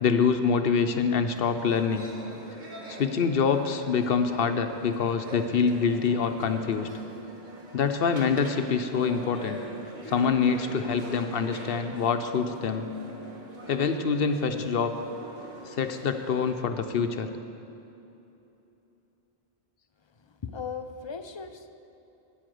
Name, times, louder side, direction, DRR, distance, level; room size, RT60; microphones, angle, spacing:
voice 1, 0.0-2.1 2.9-6.9 7.7-9.6 10.1-12.9 13.7-15.0 15.7-17.3, left 5 dB, 65° left, 8 dB, 0.9 m, -25 dB
sound 1, 1.3-16.5, right 1 dB, 50° right, 1.6 m, -43 dB
voice 2, 20.4-21.7, left 5 dB, 35° left, 8 dB, 0.5 m, -37 dB
10.0 x 8.9 x 7.7 m, 2.9 s
omnidirectional pair, 1.0 m